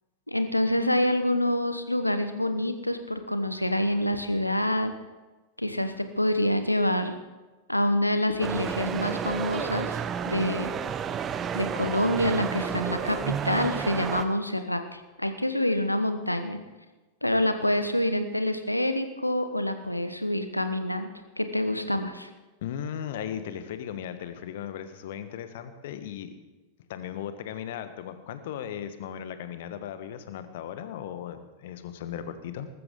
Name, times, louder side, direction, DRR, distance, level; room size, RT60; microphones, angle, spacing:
voice 1, 0.3-4.9 5.6-7.2 7.7-10.7 11.5-16.6 17.2-21.1 21.4-22.3, left 1 dB, 85° left, 9 dB, 1.1 m, -27 dB
sound 1, 8.4-14.3, right 7 dB, 25° right, 1.1 m, -31 dB
voice 2, 22.6-26.4 26.9-32.7, left 9 dB, 55° left, 10 dB, 1.3 m, -37 dB
19.5 x 14.5 x 3.8 m, 1.2 s
figure-of-eight pair, 90°, 0 cm